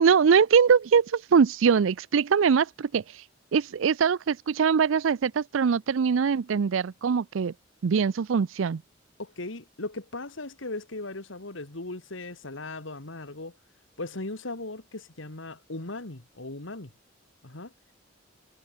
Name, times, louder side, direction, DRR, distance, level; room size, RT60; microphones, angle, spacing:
voice 1, 0.0-3.2 3.5-7.5 7.8-8.8, right 6 dB, 85° right, 0.4 m, -22 dB
voice 2, 9.2-13.5 14.0-16.9 17.4-17.7, left 2 dB, 75° left, 2.3 m, -38 dB
head